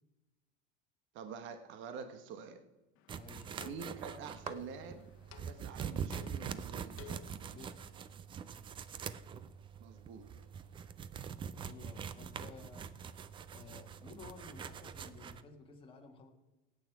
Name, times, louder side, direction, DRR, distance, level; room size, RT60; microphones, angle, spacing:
voice 1, 1.1-2.6 3.6-5.1 5.4-7.0 9.8-10.3, right 6 dB, 40° right, 8 dB, 1.0 m, -47 dB
sound 1, 3.0-7.5, left 12 dB, 45° left, 1.2 m, -56 dB
voice 2, 3.1-3.6 7.5-7.9 11.6-12.9 13.5-16.3, left 4 dB, 20° left, 1 dB, 1.6 m, -54 dB
sound 2, 3.1-15.4, right 7 dB, 20° right, 0.3 m, -44 dB
18.5 x 8.9 x 4.6 m, 1.1 s
cardioid pair, 160°, 29 cm